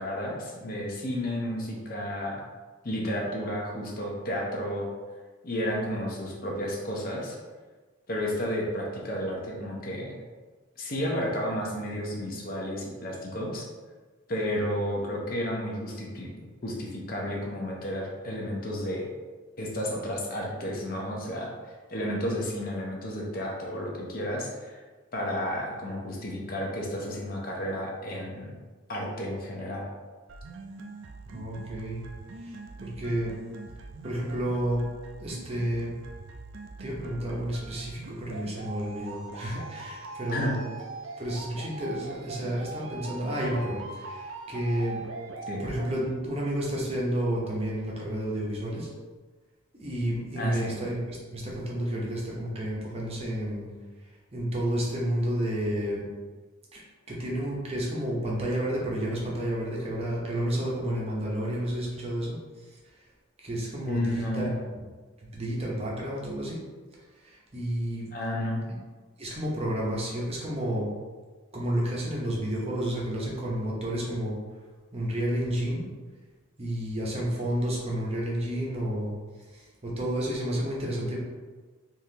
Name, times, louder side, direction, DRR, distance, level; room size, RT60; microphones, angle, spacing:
voice 1, 0.0-2.4 2.8-4.9 5.4-7.4 8.1-10.2 10.8-13.7 14.3-16.3 16.6-19.1 19.6-24.8 25.1-28.5 28.9-29.9 40.3-40.5 45.5-45.6 50.4-50.7 63.8-64.6 68.1-68.6, equal, 45° left, -1 dB, 0.6 m, -32 dB
sound 1, 30.3-46.3, right 3 dB, 60° right, 0.4 m, -42 dB
voice 2, 31.3-32.0 32.4-33.3 34.0-34.8 35.2-35.9 36.8-40.6 41.2-45.0 45.6-48.9 49.7-53.7 54.3-56.1 56.7-63.1 63.4-64.5 65.2-66.6 67.2-68.1 69.2-70.9 71.5-74.4 74.9-75.8 76.6-79.1 79.5-81.2, right 1 dB, 30° right, -3 dB, 0.7 m, -31 dB
3.7 x 2.8 x 2.7 m, 1.4 s
head